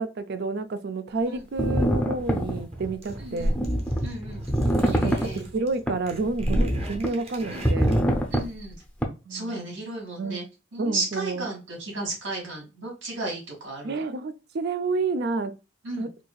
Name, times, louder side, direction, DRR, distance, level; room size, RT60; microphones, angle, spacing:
voice 1, 0.0-3.6 4.7-7.9 9.3-9.7 10.2-10.4 10.8-11.5 13.8-15.5 16.0-16.1, right 3 dB, 55° right, 0.4 m, -30 dB
sound 1, 1.6-2.6 3.4-4.1 4.5-5.3 5.9-6.0 6.4-7.1 7.6-8.4 9.0-9.1, equal, 5° left, 0.5 m, -23 dB
sound 2, 1.8-8.2, right 1 dB, 30° right, 0.9 m, -41 dB
voice 2, 3.2-3.6 4.0-4.4 4.9-5.4 7.5-7.7 8.3-8.8 9.3-10.4 10.7-14.0 15.8-16.1, right 2 dB, 75° right, 2.2 m, -34 dB
4.6 x 2.7 x 2.3 m
head